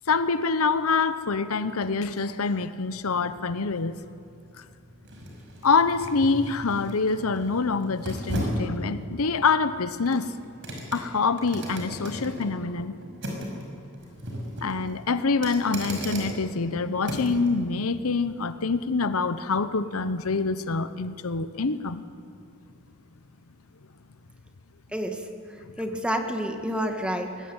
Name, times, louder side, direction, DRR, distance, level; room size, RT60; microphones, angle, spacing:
voice 1, 0.1-4.0 4.6-4.7 5.6-10.3 10.9-12.9 14.6-22.0, left 4 dB, 70° left, 13 dB, 0.9 m, -26 dB
sound 1, 2.8-17.5 17.9-18.1, equal, 55° right, 5.5 m, -37 dB
voice 2, 25.8-27.5, equal, 5° right, 4 dB, 1.9 m, -29 dB
23.0 x 19.0 x 9.0 m, 2.6 s
head